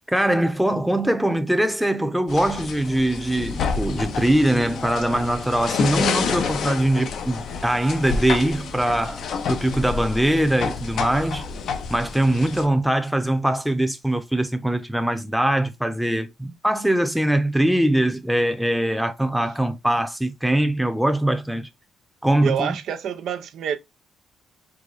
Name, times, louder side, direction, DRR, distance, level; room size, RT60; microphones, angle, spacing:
voice 1, 0.1-11.4 11.9-21.7 22.2-22.7, right 1 dB, ahead, 0.7 m, -22 dB
sound 1, 2.3-12.7, left 5 dB, 65° left, 0.7 m, -29 dB
voice 2, 22.4-23.8, right 8 dB, 70° right, 0.6 m, -27 dB
4.8 x 2.2 x 4.0 m
cardioid pair, 90°, 0 cm